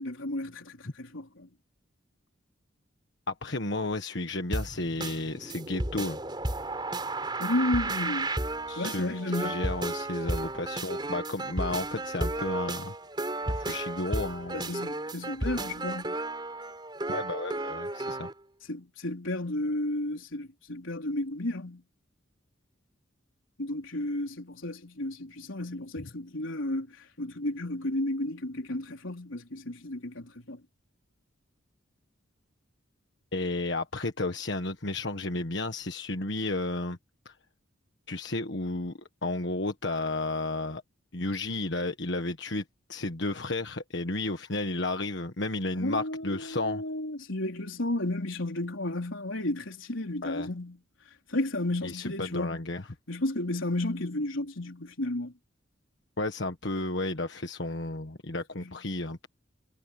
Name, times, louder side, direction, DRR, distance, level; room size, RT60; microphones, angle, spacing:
voice 1, 0.0-1.5 7.4-8.3 8.8-9.7 14.5-16.2 18.7-21.8 23.6-30.6 45.7-50.8 51.3-52.6 53.1-55.3 58.6-58.7, left 1 dB, 85° left, 3.9 m, -33 dB
voice 2, 3.3-6.2 8.7-12.9 13.5-14.7 17.1-18.3 33.3-37.0 37.2-37.3 38.1-38.9 39.2-40.8 41.1-42.6 42.9-46.8 50.2-50.5 51.8-52.8 56.2-59.3, left 2 dB, 60° left, 1.5 m, -32 dB
sound 1, 4.5-18.3, right 2 dB, 25° right, 3.8 m, -33 dB
head